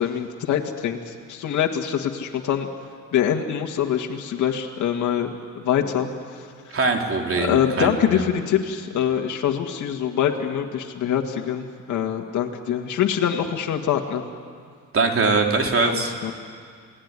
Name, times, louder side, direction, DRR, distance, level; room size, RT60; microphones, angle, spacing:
voice 1, 0.0-2.7 3.1-5.3 5.6-6.1 7.4-14.2 15.9-16.3, left 9 dB, 75° left, 1 dB, 2.0 m, -24 dB
voice 2, 6.7-8.2 14.9-16.1, right 3 dB, 45° right, 2 dB, 3.6 m, -22 dB
28.0 x 18.5 x 9.8 m, 2.1 s
cardioid pair, 90°, 30 cm